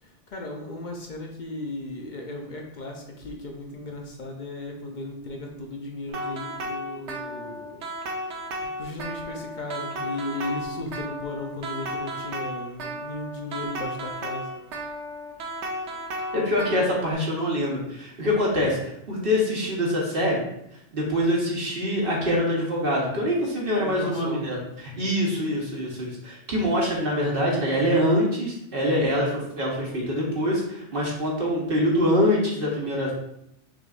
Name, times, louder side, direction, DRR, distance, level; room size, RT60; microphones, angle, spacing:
voice 1, 0.0-7.8 8.6-14.5 17.9-18.1 23.7-24.5, left 2 dB, 50° left, 1 dB, 0.6 m, -36 dB
sound 1, 6.1-17.1, equal, 70° right, 1.0 m, -34 dB
voice 2, 16.3-20.4 20.9-24.6 25.0-33.1, equal, 50° right, -3 dB, 1.2 m, -24 dB
5.9 x 3.3 x 2.5 m, 0.78 s
omnidirectional pair, 1.3 m